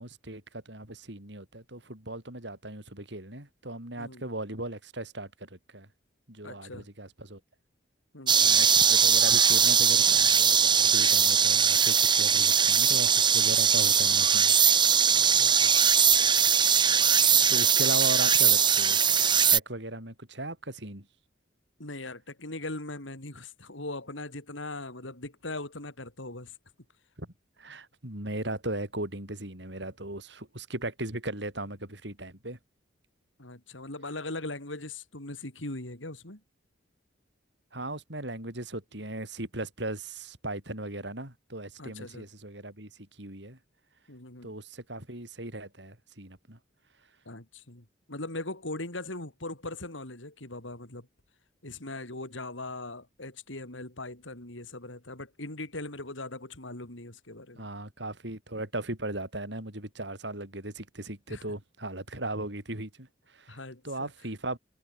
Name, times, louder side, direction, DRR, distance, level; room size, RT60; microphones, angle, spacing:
voice 1, 0.0-5.9 6.3-7.4 8.4-14.5 17.5-19.0 19.5-21.1 27.2-27.3 27.6-32.6 37.7-43.6 44.4-46.6 57.5-63.6 63.8-64.6, right 1 dB, 65° right, 6.2 m, -37 dB
voice 2, 6.4-6.9 8.1-8.6 15.1-15.8 17.8-17.9 21.8-26.5 33.4-36.4 41.8-42.3 44.1-44.5 47.2-51.1 51.6-57.7 61.3-61.4 63.5-64.1, left 2 dB, 90° left, 4.9 m, -40 dB
sound 1, 8.3-19.6, right 7 dB, 25° right, 2.0 m, -21 dB
head